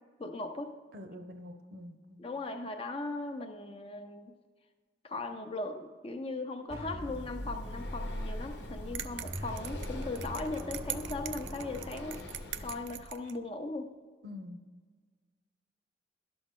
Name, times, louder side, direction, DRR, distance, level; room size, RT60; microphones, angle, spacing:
voice 1, 0.2-0.8 2.2-4.3 5.0-12.2 12.6-13.9, left 2 dB, 30° left, 6 dB, 0.6 m, -38 dB
voice 2, 0.9-2.2 14.2-14.6, left 1 dB, 55° right, 6 dB, 0.8 m, -46 dB
sound 1, 6.7-12.9, equal, 15° right, 0.5 m, -42 dB
Breathing, 7.0-13.1, left 1 dB, 70° left, 0.9 m, -44 dB
sound 2, 8.9-13.4, right 12 dB, 85° right, 0.4 m, -42 dB
11.5 x 6.1 x 3.7 m, 1.5 s
head